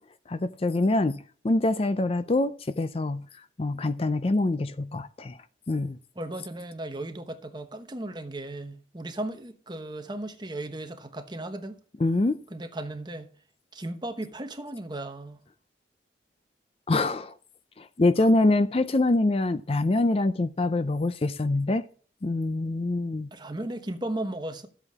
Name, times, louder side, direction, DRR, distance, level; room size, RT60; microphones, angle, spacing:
voice 1, 0.3-3.2 3.6-5.4 5.7-6.0 12.0-12.4 16.9-17.3 17.8-21.9 22.2-23.3, left 2 dB, 30° left, 0.5 m, -25 dB
voice 2, 6.1-11.8 12.5-13.3 13.7-15.4 18.2-18.3 23.3-24.7, right 1 dB, 25° right, 1.0 m, -36 dB
12.5 x 8.0 x 3.6 m
head